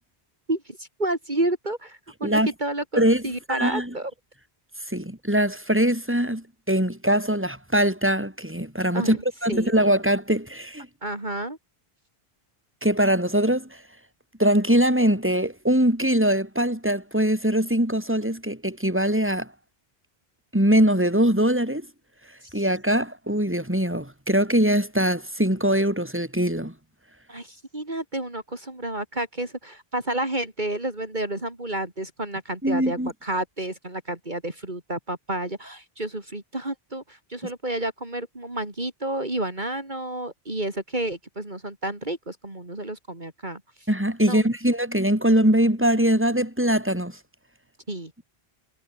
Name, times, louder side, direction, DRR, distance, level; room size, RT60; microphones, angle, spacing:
voice 1, 0.5-4.1 8.9-9.2 9.5-9.7 11.0-11.6 22.4-22.5 27.3-43.6 44.2-44.4 47.9-48.1, right 1 dB, 50° right, 4.1 m, -30 dB
voice 2, 3.5-3.9 4.9-10.9 12.8-13.8 14.4-19.5 20.5-21.9 22.5-26.7 32.6-33.1 43.9-47.2, right 1 dB, 10° right, 5.4 m, -22 dB
omnidirectional pair, 1.0 m